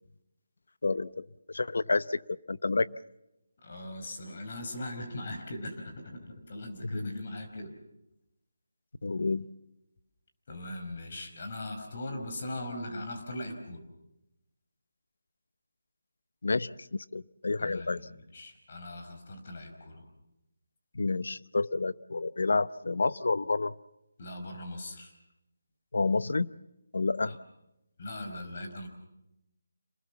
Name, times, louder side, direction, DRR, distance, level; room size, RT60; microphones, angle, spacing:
voice 1, 0.8-1.3 1.5-2.9 6.9-7.2 9.0-9.5 16.4-18.0 20.9-23.7 25.9-26.5 26.9-27.3, left 3 dB, 75° left, 16 dB, 0.8 m, -29 dB
voice 2, 3.6-7.7 10.5-13.8 17.6-18.0 18.3-20.1 24.2-25.1 27.2-27.4 28.0-28.9, left 1 dB, 45° left, 5 dB, 5.0 m, -40 dB
27.5 x 20.5 x 7.2 m, 0.91 s
figure-of-eight pair, 165°, 0 cm